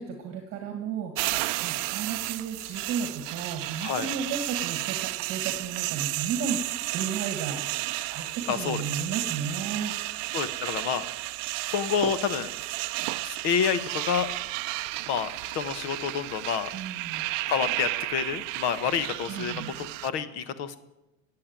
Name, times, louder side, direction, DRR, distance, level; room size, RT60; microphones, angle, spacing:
voice 1, 0.0-7.6 8.1-10.0 16.7-17.3 19.3-19.7, right 6 dB, 30° right, 4 dB, 1.8 m, -34 dB
sound 1, 1.2-20.1, right 20 dB, 60° right, 0.6 m, -33 dB
voice 2, 8.5-8.8 10.3-11.0 11.7-12.5 13.2-14.3 15.1-16.7 17.5-20.8, left 7 dB, 35° left, 13 dB, 1.1 m, -28 dB
17.5 x 7.8 x 9.0 m, 0.95 s
cardioid pair, 175°, 43 cm